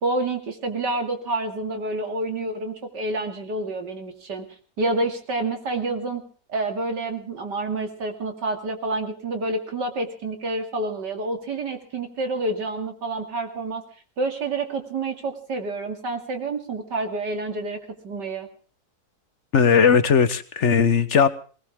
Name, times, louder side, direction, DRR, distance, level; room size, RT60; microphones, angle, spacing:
voice 1, 0.0-4.4 4.8-6.2 6.5-13.8 14.2-17.8 18.0-18.5, right 2 dB, 80° right, 5 dB, 3.2 m, -28 dB
voice 2, 19.5-21.3, left 6 dB, 45° left, 13 dB, 1.2 m, -18 dB
20.0 x 19.5 x 3.7 m, 0.41 s
omnidirectional pair, 1.8 m